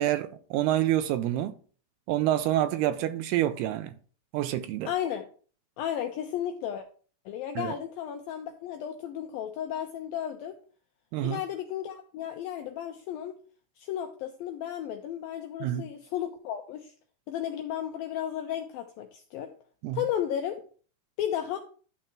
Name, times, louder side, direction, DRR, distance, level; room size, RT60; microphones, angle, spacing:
voice 1, 0.0-1.5 2.1-4.0 4.3-4.9 7.6-7.7 11.1-11.4 15.6-15.9 19.8-20.0, right 13 dB, 85° right, 2.4 m, -27 dB
voice 2, 4.9-5.3 5.8-6.9 7.3-10.6 11.2-13.4 13.8-16.9 17.3-19.5 19.9-20.6 21.2-21.6, left 10 dB, 90° left, 2.1 m, -33 dB
12.0 x 4.2 x 5.8 m
omnidirectional pair, 5.1 m